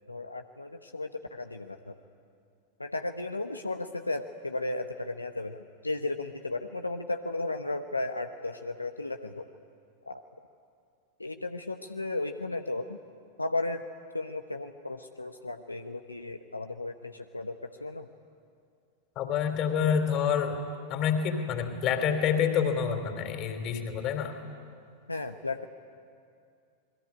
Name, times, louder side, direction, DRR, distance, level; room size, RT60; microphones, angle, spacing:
voice 1, 0.1-1.9 2.8-9.5 10.1-10.2 11.2-13.0 13.4-13.8 14.1-18.1 25.1-25.7, left 2 dB, 80° left, 6 dB, 0.9 m, -35 dB
voice 2, 19.1-20.6 20.9-24.3, left 7 dB, 35° left, 7 dB, 3.4 m, -27 dB
28.0 x 22.0 x 9.7 m, 2.4 s
figure-of-eight pair, 90°, 0 cm